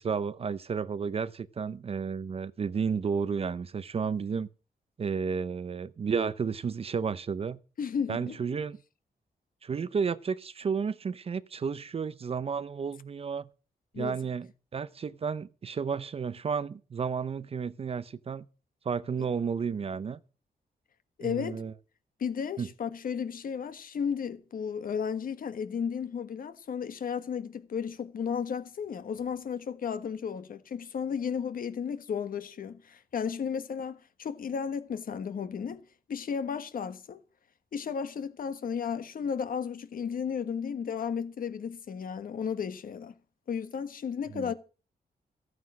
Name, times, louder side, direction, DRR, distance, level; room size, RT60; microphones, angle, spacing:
voice 1, 0.0-4.5 5.0-7.6 8.1-8.8 9.6-13.5 14.0-18.5 18.8-20.2 21.2-21.7 22.6-22.7 44.3-44.5, right 6 dB, 35° right, 0.6 m, -32 dB
voice 2, 7.8-8.4 13.9-14.2 19.2-19.3 21.2-21.6 22.2-35.8 36.1-37.2 37.7-43.1 43.5-44.5, left 7 dB, 60° left, 1.5 m, -34 dB
15.0 x 9.4 x 6.3 m
wide cardioid pair, 165°, 17 cm